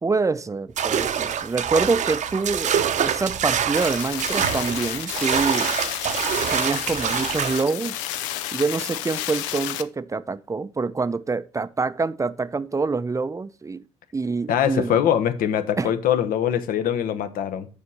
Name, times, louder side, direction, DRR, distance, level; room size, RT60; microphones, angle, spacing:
voice 1, 0.0-5.7 6.5-8.0 8.5-13.8 14.1-15.0 15.8-15.9, right 4 dB, 20° right, 0.5 m, -26 dB
sound 1, 0.8-7.7, right 8 dB, 50° right, 0.7 m, -25 dB
sound 2, 3.8-9.8, left 12 dB, 80° left, 0.5 m, -31 dB
voice 2, 14.5-17.7, left 9 dB, 65° left, 0.9 m, -22 dB
6.9 x 4.2 x 6.2 m
hypercardioid pair, 50°, 16 cm